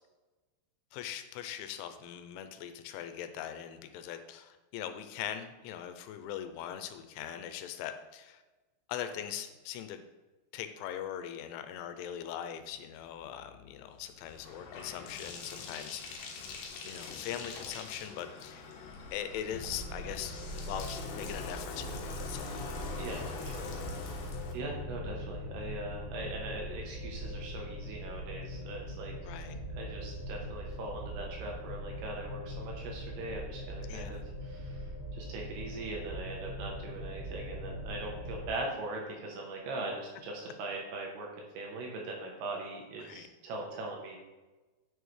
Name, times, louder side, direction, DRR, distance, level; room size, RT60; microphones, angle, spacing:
voice 1, 0.9-8.4 8.9-10.0 10.5-16.5 16.8-18.7 19.1-22.6 29.2-29.6 33.9-34.2 43.0-43.3, left 10 dB, 90° left, 9 dB, 3.0 m, -41 dB
Bathtub (filling or washing), 13.2-24.5, left 5 dB, 75° left, 2.3 m, -44 dB
sound 1, 19.5-38.5, equal, 5° right, 1.1 m, -41 dB
voice 2, 23.0-23.6 23.9-29.4 29.8-44.2, right 2 dB, 70° right, -1 dB, 2.6 m, -41 dB
9.1 x 6.4 x 3.2 m, 1.2 s
omnidirectional pair, 5.4 m